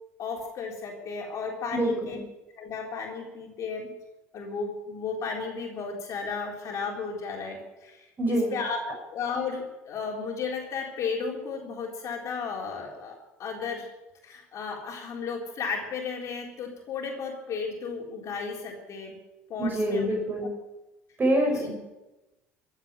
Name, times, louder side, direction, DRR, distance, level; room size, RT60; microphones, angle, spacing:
voice 1, 0.2-2.2 2.6-3.9 4.3-8.8 9.1-13.9 14.2-19.2 19.5-20.1 21.5-21.6, left 5 dB, 45° left, 0 dB, 3.9 m, -34 dB
voice 2, 1.7-2.2 8.2-8.5 19.6-20.5 21.2-21.7, right 1 dB, 25° right, 2 dB, 5.9 m, -25 dB
15.5 x 8.3 x 8.8 m, 1.0 s
figure-of-eight pair, 65°, 7 cm